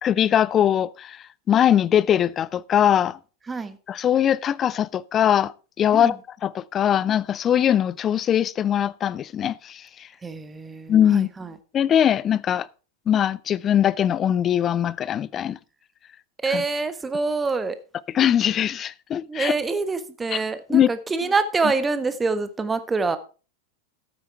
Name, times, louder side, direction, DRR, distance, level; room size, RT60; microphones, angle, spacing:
voice 1, 0.0-3.2 3.9-10.1 10.9-11.3 11.7-12.7 13.1-15.6 16.5-16.6 18.1-19.5 20.7-20.9, left 10 dB, 25° left, 0.5 m, -21 dB
voice 2, 3.5-3.8 5.9-6.1 10.2-11.5 16.4-17.8 19.3-23.2, right 4 dB, 15° right, 1.3 m, -26 dB
13.0 x 9.4 x 3.4 m
figure-of-eight pair, 90°, 0 cm